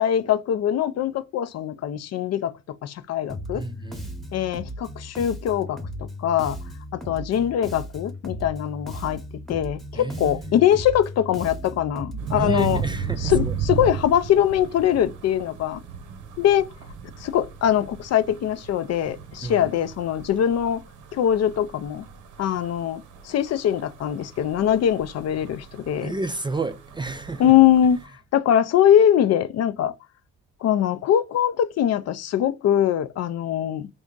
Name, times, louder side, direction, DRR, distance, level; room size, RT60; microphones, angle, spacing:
voice 1, 0.0-2.5 2.8-3.6 4.3-5.8 6.2-6.6 6.9-9.2 9.5-12.8 13.2-15.8 16.4-16.6 17.2-20.8 21.1-22.1 22.4-26.1 27.4-28.0 28.3-29.9 30.6-33.9, left 10 dB, 55° left, 0.4 m, -22 dB
Bass guitar, 3.3-13.2, equal, ahead, 0.9 m, -37 dB
voice 2, 3.5-4.2 9.9-10.6 12.4-13.6 19.4-19.7 26.0-27.5, right 3 dB, 15° right, 0.3 m, -31 dB
sound 1, 12.2-28.0, right 7 dB, 90° right, 0.8 m, -35 dB
3.4 x 2.6 x 3.7 m
cardioid pair, 90°, 30 cm